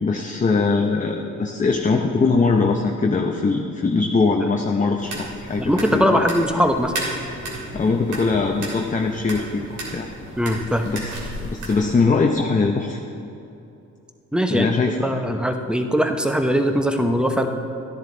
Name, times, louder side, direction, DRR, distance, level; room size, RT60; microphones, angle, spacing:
voice 1, 0.0-6.2 7.7-10.1 10.9-11.2 11.4-13.0 14.5-15.1, left 4 dB, 25° left, 2 dB, 0.8 m, -21 dB
sound 1, 5.0-12.0, right 1 dB, 80° right, 2.8 m, -33 dB
voice 2, 5.6-6.9 10.4-10.9 14.3-14.7 15.0-17.5, equal, 5° right, 5 dB, 0.9 m, -20 dB
13.0 x 10.5 x 4.0 m, 2.8 s
cardioid pair, 90°, 30 cm